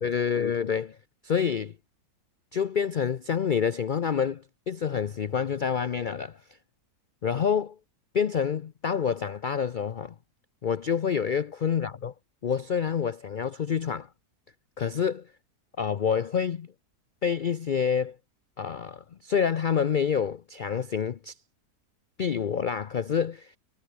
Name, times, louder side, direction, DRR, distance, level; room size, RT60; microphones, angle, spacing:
voice 1, 0.0-1.0 1.2-1.7 2.5-6.4 7.2-7.8 8.1-10.1 10.6-12.1 12.4-14.1 14.8-15.3 15.8-16.7 17.2-18.2 18.6-21.3 22.2-23.6, left 7 dB, 75° left, 0.4 m, -27 dB
omnidirectional pair, 1.7 m